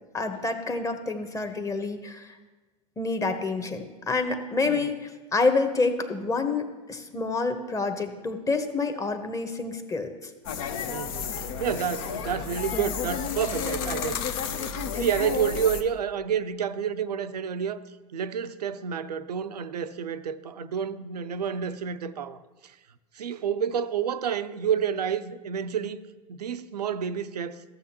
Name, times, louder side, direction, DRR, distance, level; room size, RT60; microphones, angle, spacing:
voice 1, 0.1-2.4 3.0-10.3, left 3 dB, 15° left, 1.0 m, -28 dB
sound 1, 10.4-15.8, left 7 dB, 60° left, 0.8 m, -31 dB
voice 2, 10.9-14.2 14.9-17.8 18.1-22.7 23.2-26.0 26.3-27.6, right 7 dB, 80° right, 0.5 m, -29 dB
14.5 x 7.0 x 2.9 m
figure-of-eight pair, 85°, 20 cm